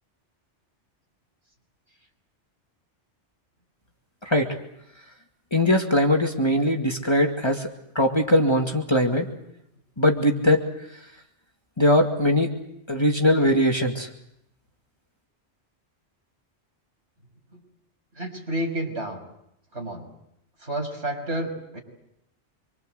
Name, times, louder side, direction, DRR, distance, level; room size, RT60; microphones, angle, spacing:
voice 1, 4.2-4.6 5.5-7.7 7.9-9.3 10.0-10.7 11.8-12.5 12.9-14.1, left 1 dB, 20° left, 2 dB, 2.3 m, -21 dB
voice 2, 18.2-19.2 19.7-20.1 20.6-21.8, right 1 dB, 65° right, 2 dB, 6.5 m, -30 dB
26.5 x 25.0 x 7.9 m, 0.78 s
omnidirectional pair, 1.2 m